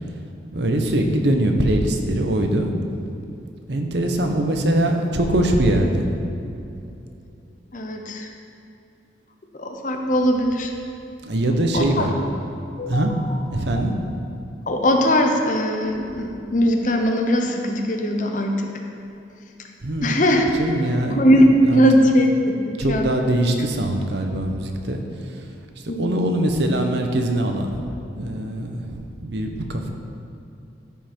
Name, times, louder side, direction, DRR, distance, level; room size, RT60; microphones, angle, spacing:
voice 1, 0.5-2.7 3.7-6.2 11.2-12.2 12.9-13.1 13.5-13.9 19.8-21.8 22.8-25.5 25.8-27.8 28.1-29.9, right 1 dB, 65° right, 4 dB, 0.9 m, -22 dB
voice 2, 7.7-8.3 9.6-10.7 11.7-12.1 12.8-13.0 14.7-18.7 20.0-20.5 21.1-23.1 25.9-26.2, equal, 40° left, 3 dB, 0.8 m, -19 dB
14.0 x 5.6 x 4.5 m, 2.7 s
head